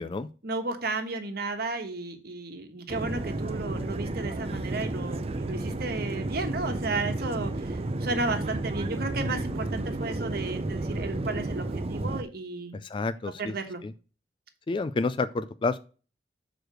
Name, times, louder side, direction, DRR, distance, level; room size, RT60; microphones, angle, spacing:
voice 1, 0.4-12.8 13.4-13.8, right 3 dB, 60° right, 6 dB, 1.3 m, -33 dB
sound 1, 2.9-12.2, right 2 dB, 35° right, 0.5 m, -32 dB
voice 2, 12.7-13.5 13.8-13.9 14.7-15.8, left 3 dB, 25° left, 13 dB, 0.3 m, -29 dB
6.6 x 4.8 x 6.1 m, 0.37 s
head